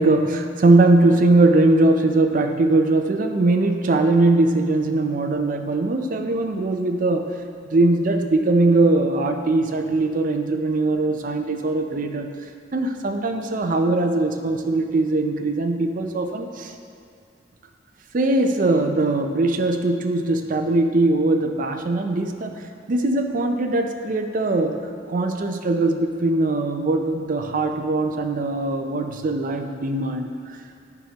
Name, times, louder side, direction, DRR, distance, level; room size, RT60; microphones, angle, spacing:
voice 1, 0.0-7.3 7.7-12.3 12.7-16.7 18.1-22.6 22.9-24.8 25.1-30.6, right 2 dB, 45° right, 5 dB, 0.5 m, -20 dB
10.5 x 4.3 x 2.9 m, 2.3 s
head